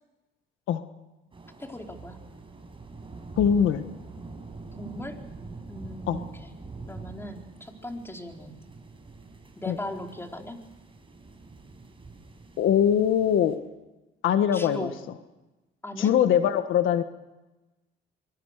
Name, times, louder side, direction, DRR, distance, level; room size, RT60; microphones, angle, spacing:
sound 1, 1.3-13.6, right 3 dB, 25° right, 6.3 m, -44 dB
voice 1, 1.6-2.2 4.8-5.2 5.7-6.5 6.9-8.6 9.6-10.6 14.5-14.9 15.8-16.1, left 1 dB, 10° left, 2 dB, 4.2 m, -38 dB
voice 2, 3.4-3.8 6.1-6.2 9.7-9.8 12.6-13.5 14.2-14.9 16.0-17.0, left 9 dB, 85° left, 9 dB, 1.5 m, -22 dB
25.0 x 24.5 x 6.7 m, 1.1 s
cardioid pair, 90°, 20 cm